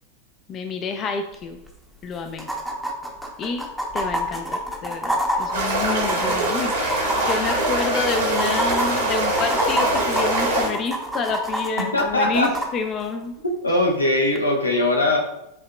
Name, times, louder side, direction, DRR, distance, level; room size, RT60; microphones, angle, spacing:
voice 1, 0.5-1.6 2.0-2.5 3.4-3.7 3.9-13.3, left 4 dB, 30° left, 6 dB, 0.4 m, -29 dB
sound 1, 1.3-1.4 1.7-1.8 2.4-12.7 14.3-14.4, equal, ahead, 0.7 m, -27 dB
sound 2, 5.5-10.7, right 1 dB, 65° right, 1.1 m, -23 dB
voice 2, 11.9-12.5 13.6-15.2, left 1 dB, 80° left, 1 dB, 0.8 m, -20 dB
7.1 x 2.8 x 2.2 m, 0.84 s
figure-of-eight pair, 90°, 0 cm